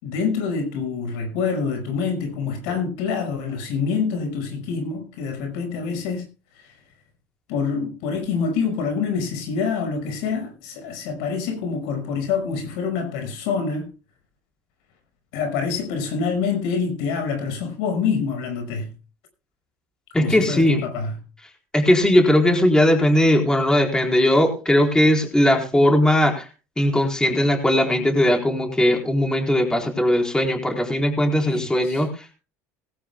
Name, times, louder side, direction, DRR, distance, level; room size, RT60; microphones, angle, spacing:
voice 1, 0.0-6.3 6.5-6.7 7.5-13.9 15.3-18.9 20.2-21.1 31.4-32.0, left 5 dB, 75° left, 5.6 m, -26 dB
voice 2, 20.1-20.8 21.7-26.5 26.8-32.3, left 1 dB, 10° left, 4.1 m, -19 dB
19.0 x 16.0 x 2.3 m
supercardioid pair, 100°, 8 cm